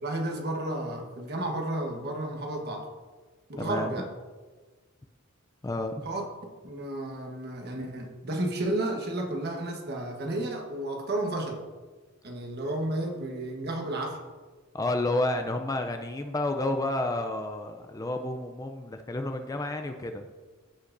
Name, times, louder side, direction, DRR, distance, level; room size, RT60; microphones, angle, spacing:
voice 1, 0.0-2.9 3.5-4.1 6.0-6.3 6.6-11.6 12.2-14.2, right 1 dB, 50° right, 2 dB, 1.3 m, -32 dB
voice 2, 3.5-3.9 5.6-6.1 14.7-20.3, left 2 dB, 15° left, 6 dB, 0.4 m, -30 dB
15.5 x 5.6 x 2.6 m, 1.3 s
head